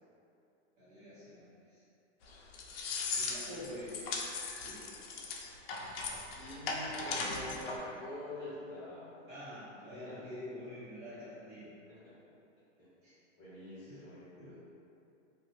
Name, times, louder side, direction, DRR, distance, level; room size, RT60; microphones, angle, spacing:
voice 1, 0.8-1.8 3.1-4.1 4.6-4.8 9.3-11.7 13.0-13.2 13.9-14.0 14.4-14.5, left 1 dB, 45° right, -12 dB, 1.4 m, -47 dB
sound 1, 2.3-7.8, left 4 dB, 55° left, 0.5 m, -38 dB
voice 2, 6.4-9.3 10.0-10.3 11.1-11.2 11.9-12.2 12.8-12.9 13.4-14.5, left 1 dB, 15° left, -13 dB, 0.7 m, -46 dB
2.7 x 2.4 x 3.1 m, 2.7 s
hypercardioid pair, 160°, 36 cm